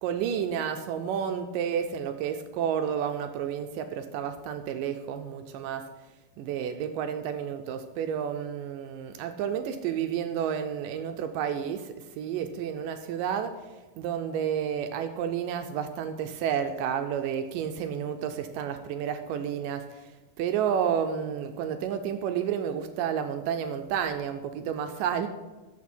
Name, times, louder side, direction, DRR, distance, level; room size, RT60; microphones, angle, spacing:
voice 1, 0.0-5.8 6.4-13.5 14.0-25.3, right 8 dB, 80° right, 7 dB, 2.0 m, -31 dB
13.5 x 6.1 x 4.4 m, 1.2 s
omnidirectional pair, 4.4 m